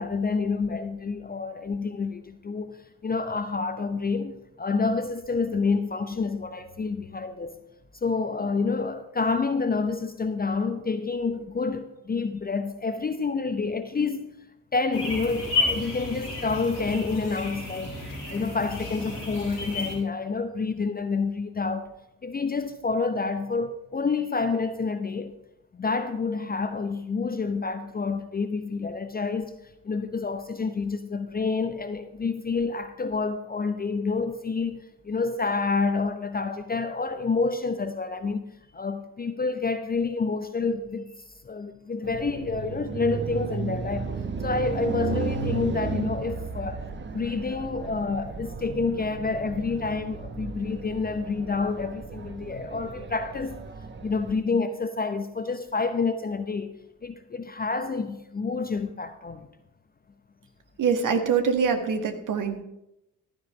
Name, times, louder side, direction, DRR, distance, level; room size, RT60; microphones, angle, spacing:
voice 1, 0.0-7.6 8.0-14.3 14.7-21.9 22.2-25.3 25.7-29.5 29.8-46.8 47.1-53.6 54.0-56.8 57.0-59.5, left 4 dB, 20° left, 0.8 m, -28 dB
sound 1, 14.9-19.9, left 3 dB, 75° left, 4.5 m, -32 dB
sound 2, 42.0-54.3, right 4 dB, 25° right, 1.1 m, -34 dB
voice 2, 60.8-62.6, right 6 dB, 40° right, 1.7 m, -24 dB
15.0 x 13.0 x 3.2 m
figure-of-eight pair, 45°, 46 cm